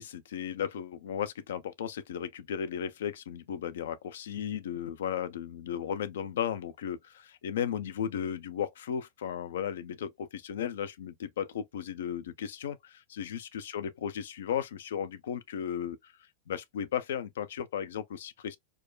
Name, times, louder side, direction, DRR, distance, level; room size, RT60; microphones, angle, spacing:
voice 1, 0.0-16.1 16.5-18.6, left 8 dB, 60° left, 0.5 m, -35 dB
4.6 x 2.1 x 2.3 m
figure-of-eight pair, 90°, 0 cm